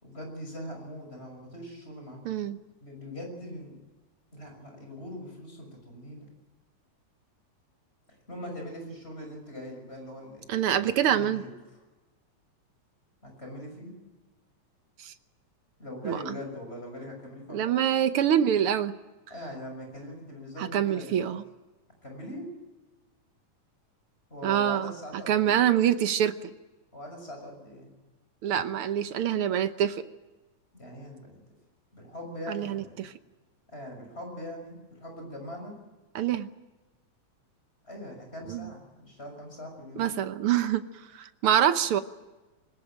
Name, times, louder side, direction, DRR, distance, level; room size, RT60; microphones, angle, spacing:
voice 1, 0.0-2.2 2.8-3.8 4.3-6.3 8.3-10.5 11.0-11.5 13.2-14.0 15.8-17.7 19.3-21.3 22.0-22.5 24.3-25.6 26.9-27.9 30.7-31.4 31.9-33.0 33.7-35.8 37.8-40.1, left 1 dB, 20° left, 2 dB, 6.6 m, -41 dB
voice 2, 2.2-2.6 10.5-11.4 15.0-15.1 16.0-16.3 17.5-18.9 20.7-21.4 24.4-24.9 25.3-26.5 28.4-30.0 32.5-33.1 36.1-36.5 38.5-38.7 40.0-40.8 41.1-42.0, right 10 dB, 65° right, 10 dB, 1.5 m, -25 dB
21.5 x 19.5 x 8.9 m, 1.2 s
omnidirectional pair, 3.4 m